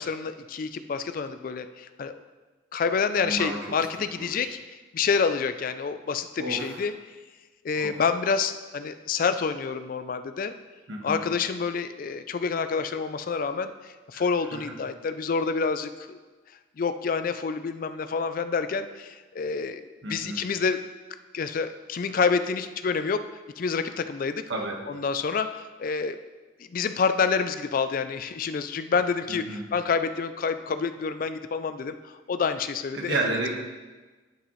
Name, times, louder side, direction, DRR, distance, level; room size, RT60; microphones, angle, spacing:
voice 1, 0.0-2.1 2.7-6.9 7.6-10.5 11.0-16.2 16.8-19.8 20.1-20.8 21.3-23.3 23.6-24.4 24.9-26.2 26.6-33.2, left 5 dB, 45° left, 10 dB, 0.3 m, -28 dB
voice 2, 3.2-3.9 4.1-4.5 6.4-6.8 7.7-8.0 10.9-11.2 14.1-14.2 14.5-14.7 20.0-20.4 24.5-24.8 29.3-29.6 32.9-33.5, right 2 dB, 70° right, 1 dB, 1.3 m, -32 dB
11.0 x 6.3 x 3.1 m, 1.3 s
head